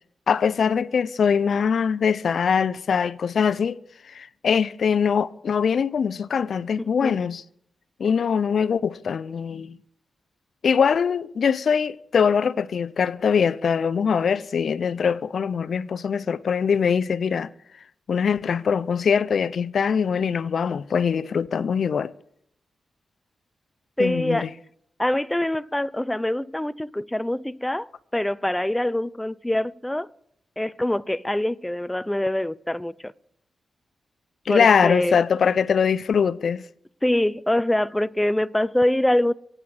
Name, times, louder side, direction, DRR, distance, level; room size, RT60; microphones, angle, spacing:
voice 1, 0.3-3.8 4.1-7.4 8.0-9.8 10.6-17.5 18.1-22.1 24.0-24.5 34.5-36.6, left 6 dB, 70° left, 0.5 m, -22 dB
voice 2, 6.8-7.1 24.0-24.5 25.0-30.1 30.6-33.1 34.5-35.2 37.0-39.3, left 1 dB, 10° left, 0.5 m, -24 dB
24.0 x 8.8 x 4.9 m
cardioid pair, 65°, 0 cm